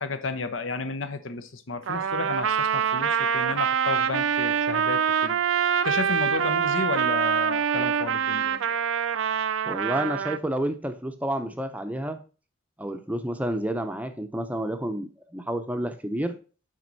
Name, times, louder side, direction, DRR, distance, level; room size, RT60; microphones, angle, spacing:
voice 1, 0.0-5.4 5.8-8.8, left 4 dB, 80° left, 0.8 m, -32 dB
Trumpet, 1.9-10.4, right 7 dB, 80° right, 0.5 m, -25 dB
voice 2, 9.6-12.2 12.8-16.4, right 1 dB, 5° right, 0.6 m, -30 dB
7.6 x 5.2 x 4.0 m
head